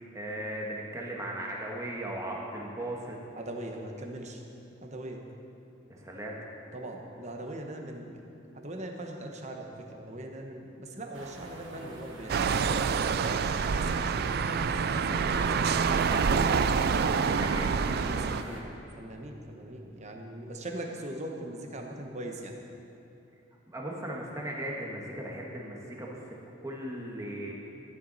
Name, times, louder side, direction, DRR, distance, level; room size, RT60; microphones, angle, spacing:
voice 1, 0.1-3.2 5.9-6.4 17.1-17.7 23.7-26.2 26.6-27.5, right 1 dB, 15° right, -2 dB, 1.6 m, -37 dB
voice 2, 3.4-4.4 4.8-5.2 6.7-8.2 8.5-12.9 13.5-15.8 17.9-18.7 19.0-22.6, right 1 dB, 35° right, 2 dB, 1.1 m, -41 dB
sound 1, 11.1-18.6, right 1 dB, 80° right, 1.4 m, -44 dB
sound 2, 12.3-18.4, right 5 dB, 55° right, 0.4 m, -27 dB
14.0 x 10.5 x 4.1 m, 2.9 s
head